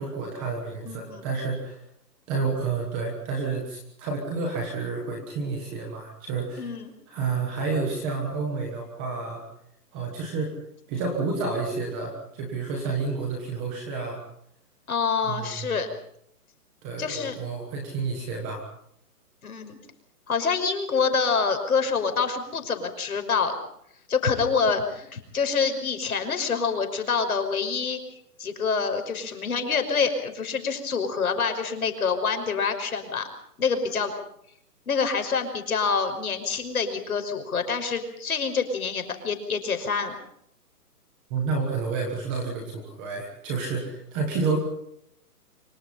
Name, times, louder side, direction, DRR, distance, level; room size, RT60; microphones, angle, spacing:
voice 1, 0.0-1.8 2.3-6.8 7.1-9.4 9.9-10.5 10.9-14.2 15.2-15.8 16.8-18.6 41.3-44.6, right 4 dB, 5° right, 1 dB, 1.2 m, -30 dB
voice 2, 0.8-1.2 6.6-6.9 14.9-15.9 17.0-17.4 19.4-19.8 20.3-23.5 24.1-28.0 28.4-33.3 33.6-34.1 34.9-40.2, left 5 dB, 65° left, 7 dB, 5.8 m, -26 dB
25.5 x 24.5 x 5.6 m, 0.72 s
hypercardioid pair, 180°, 47 cm